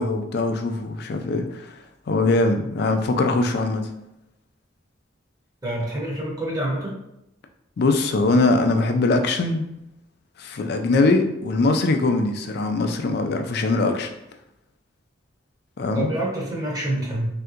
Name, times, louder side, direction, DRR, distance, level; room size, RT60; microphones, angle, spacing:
voice 1, 0.0-1.7 2.1-3.9 7.8-9.7 10.4-14.1 15.8-16.1, left 2 dB, 55° left, 5 dB, 0.4 m, -22 dB
voice 2, 5.6-7.0 15.9-17.3, right 1 dB, 20° right, -4 dB, 0.7 m, -27 dB
3.3 x 2.8 x 2.4 m, 0.84 s
head